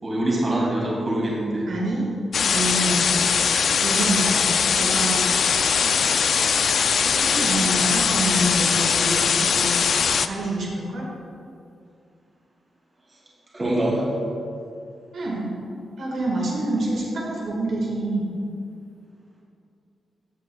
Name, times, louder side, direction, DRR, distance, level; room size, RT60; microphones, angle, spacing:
voice 1, 0.0-1.7 6.5-6.6 13.5-14.1, right 1 dB, 25° right, -4 dB, 2.4 m, -24 dB
voice 2, 1.7-2.1 2.5-3.1 3.8-5.9 6.2-6.6 7.1-9.8 10.3-11.0 15.1-15.5 16.0-18.3, right 1 dB, 65° right, -4 dB, 1.7 m, -27 dB
sound 1, 2.3-10.3, left 6 dB, 55° left, 0.3 m, -21 dB
15.0 x 8.2 x 2.3 m, 2.4 s
wide cardioid pair, 170°, 0 cm